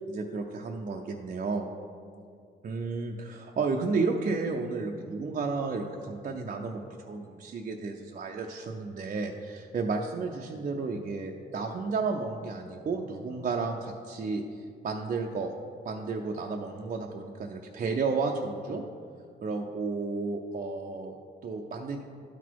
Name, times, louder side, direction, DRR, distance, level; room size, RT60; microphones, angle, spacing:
voice 1, 0.1-1.7 2.6-15.5 15.8-18.8 19.4-22.1, right 4 dB, 40° right, 1 dB, 0.6 m, -32 dB
11.5 x 4.1 x 4.6 m, 2.3 s
cardioid pair, 90°, 20 cm